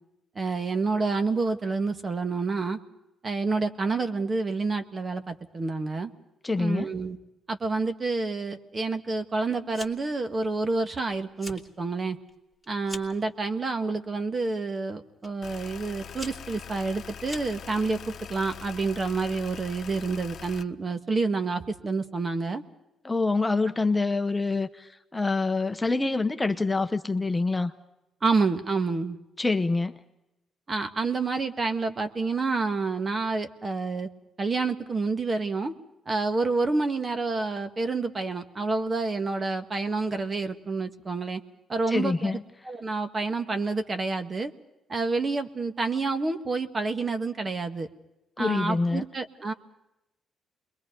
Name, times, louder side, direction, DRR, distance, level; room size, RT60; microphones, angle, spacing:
voice 1, 0.4-2.8 3.2-6.1 6.6-7.2 7.5-12.2 12.7-18.0 18.3-22.6 28.2-29.2 30.7-34.1 34.4-35.8 36.1-41.4 41.7-42.3 42.6-44.5 44.9-47.9 48.4-49.5, right 3 dB, 35° right, 8 dB, 1.7 m, -28 dB
voice 2, 6.4-6.9 23.0-27.7 29.4-29.9 41.9-42.4 48.4-49.0, left 3 dB, 15° left, 8 dB, 1.0 m, -26 dB
Fire, 9.7-10.2 10.5-11.0 11.3-11.7 12.1-13.2 14.0-14.4 15.2-15.3 15.9-17.8, left 2 dB, ahead, 2.8 m, -43 dB
sound 1, 15.4-20.6, left 8 dB, 55° left, 1.1 m, -43 dB
29.0 x 22.5 x 5.3 m, 0.91 s
cardioid pair, 90°, 0 cm